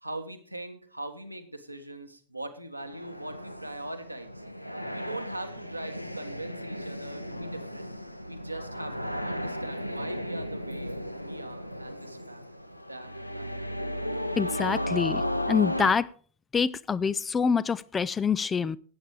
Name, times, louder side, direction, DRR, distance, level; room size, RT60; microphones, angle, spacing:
voice 1, 0.0-4.4 4.9-7.9 8.3-12.4 12.9-13.6, right 1 dB, 85° right, 6 dB, 1.3 m, -41 dB
sound 1, 2.8-15.9, equal, 90° left, 0.6 m, -35 dB
voice 2, 14.4-16.1 16.5-18.8, left 6 dB, 20° left, 18 dB, 0.4 m, -26 dB
12.0 x 8.7 x 4.9 m, 0.43 s
figure-of-eight pair, 90°, 0 cm